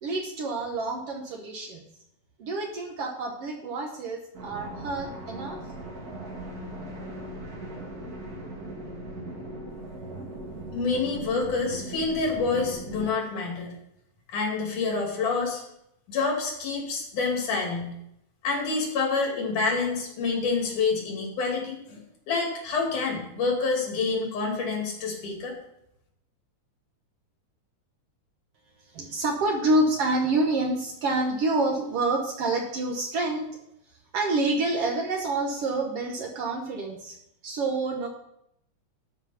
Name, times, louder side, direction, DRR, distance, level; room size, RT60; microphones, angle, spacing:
voice 1, 0.0-1.8 2.4-5.6 28.9-33.5 34.1-37.2 37.4-38.1, right 2 dB, 60° right, 1 dB, 1.7 m, -27 dB
sound 1, 4.3-13.1, right 1 dB, 40° right, 1.6 m, -39 dB
voice 2, 10.7-13.7 14.3-15.6 16.1-17.9 18.4-25.5, left 4 dB, 80° left, 0 dB, 3.9 m, -27 dB
12.5 x 4.9 x 5.7 m, 0.79 s
omnidirectional pair, 3.5 m